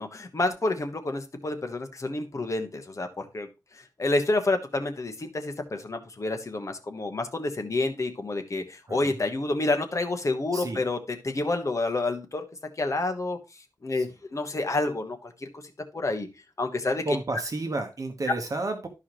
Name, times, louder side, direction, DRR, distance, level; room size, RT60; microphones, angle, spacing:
voice 1, 0.0-12.4 12.8-15.6 15.9-16.3 16.6-17.2, left 2 dB, 45° left, 6 dB, 1.3 m, -29 dB
voice 2, 17.0-18.9, right 2 dB, 50° right, 5 dB, 1.2 m, -31 dB
13.0 x 4.8 x 3.0 m, 0.27 s
wide cardioid pair, 115°, 7 cm